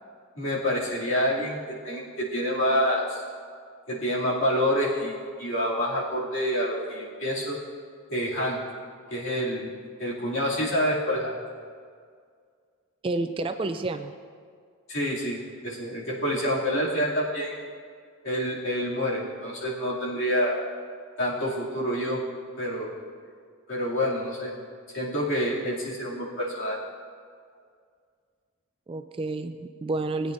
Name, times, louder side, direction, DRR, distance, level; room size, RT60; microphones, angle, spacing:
voice 1, 0.4-3.2 3.9-7.6 8.1-8.6 9.1-9.7 10.0-11.4 14.9-17.5 18.2-20.6 21.2-22.2 22.6-22.9 23.7-24.5 24.9-26.8, equal, 55° left, -6 dB, 2.6 m, -27 dB
voice 2, 13.0-14.1 28.9-30.3, right 2 dB, 25° right, 8 dB, 0.3 m, -30 dB
19.5 x 8.9 x 2.6 m, 2.1 s
head